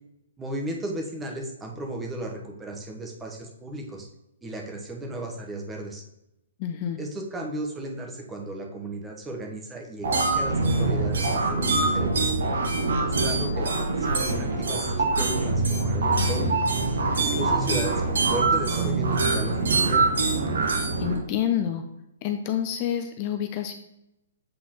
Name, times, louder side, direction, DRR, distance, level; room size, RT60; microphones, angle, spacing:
voice 1, 0.4-4.1 4.4-6.0 7.0-12.3 13.0-16.5 17.1-20.1, right 1 dB, 10° right, 1 dB, 1.0 m, -35 dB
voice 2, 6.6-7.0 21.0-21.8 22.2-23.7, left 10 dB, 40° left, 7 dB, 0.5 m, -28 dB
sound 1, 10.0-21.2, right 3 dB, 75° right, 1.4 m, -24 dB
7.7 x 4.1 x 3.0 m, 0.86 s
hypercardioid pair, 130°, 0 cm